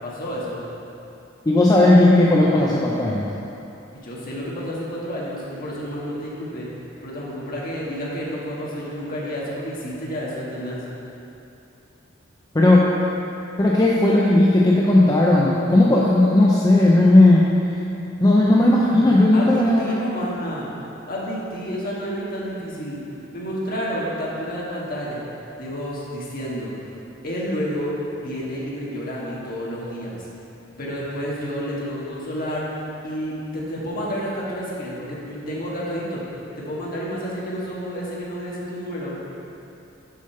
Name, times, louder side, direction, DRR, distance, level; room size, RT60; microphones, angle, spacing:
voice 1, 0.0-0.6 3.9-6.7 7.0-10.8 19.3-20.7 21.0-23.0 23.3-25.3 25.6-26.7 27.2-30.3 30.8-32.6 33.0-36.2 36.6-39.2, equal, 45° left, -5 dB, 1.5 m, -30 dB
voice 2, 1.5-3.3 12.5-12.9 13.6-17.4 18.2-19.9, left 1 dB, 20° left, -5 dB, 0.5 m, -15 dB
6.4 x 5.2 x 5.6 m, 2.8 s
head